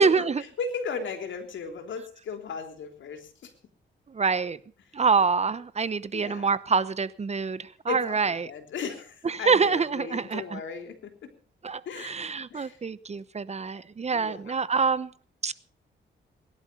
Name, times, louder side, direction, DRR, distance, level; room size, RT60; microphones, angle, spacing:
voice 1, 0.0-0.4 4.1-4.6 4.9-8.5 9.2-10.6 11.6-15.1 15.4-15.5, right 5 dB, 35° right, 1.0 m, -26 dB
voice 2, 0.6-3.5 6.1-6.5 7.9-11.3 11.9-12.8 14.1-14.5, left 5 dB, 85° left, 3.5 m, -36 dB
21.5 x 11.5 x 5.5 m
cardioid pair, 95°, 19 cm